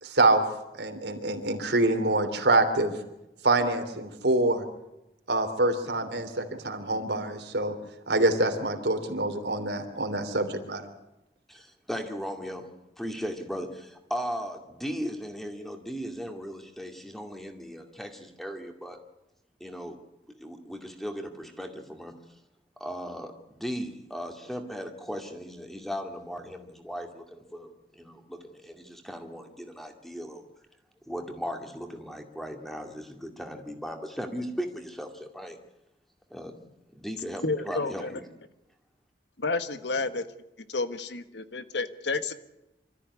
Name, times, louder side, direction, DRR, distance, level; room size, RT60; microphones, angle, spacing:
voice 1, 0.0-0.4 0.8-2.9 3.4-4.6 5.3-7.8 8.1-10.9, right 2 dB, 80° right, 6 dB, 3.1 m, -25 dB
voice 2, 11.5-12.7 13.0-19.0 19.6-20.0 20.2-22.1 22.8-30.5 31.1-35.6 36.3-38.2, equal, ahead, 5 dB, 2.2 m, -37 dB
voice 3, 37.4-38.2 39.4-40.3 40.7-42.3, left 3 dB, 85° left, 11 dB, 1.4 m, -30 dB
25.5 x 14.0 x 9.7 m, 0.93 s
head